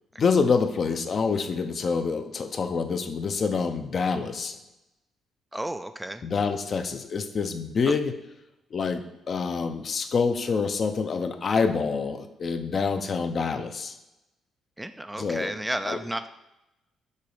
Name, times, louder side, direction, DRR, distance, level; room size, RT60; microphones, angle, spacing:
voice 1, 0.2-4.6 6.2-8.2 8.7-13.9 15.2-15.5 15.9-16.0, left 5 dB, 45° left, 8 dB, 0.6 m, -26 dB
voice 2, 5.5-6.2 7.9-8.0 14.8-16.3, right 1 dB, 10° right, 10 dB, 0.3 m, -32 dB
6.6 x 3.0 x 4.9 m, 0.92 s
cardioid pair, 90°, 0 cm